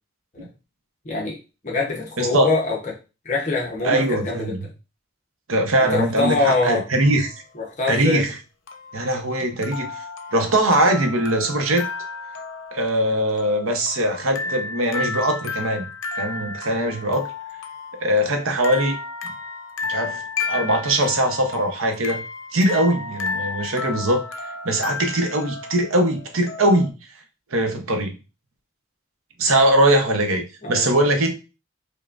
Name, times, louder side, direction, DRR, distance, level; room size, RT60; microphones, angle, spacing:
voice 1, 1.0-1.4 1.6-2.9 3.2-4.6 5.9-6.8 7.5-8.2 30.6-30.9, left 3 dB, 35° left, -2 dB, 0.8 m, -24 dB
voice 2, 2.2-2.5 3.8-4.6 5.5-7.3 7.9-8.4 8.9-10.0 10.3-11.9 12.7-15.9 16.2-17.3 17.9-19.0 19.2-19.3 19.9-20.2 20.5-22.2 22.5-24.2 24.6-26.9 27.5-28.2 29.4-31.3, right 1 dB, 85° right, 5 dB, 0.8 m, -21 dB
sound 1, 7.0-7.4 8.7-26.9, left 4 dB, 70° left, 0.5 m, -33 dB
5.1 x 2.2 x 2.5 m, 0.30 s
head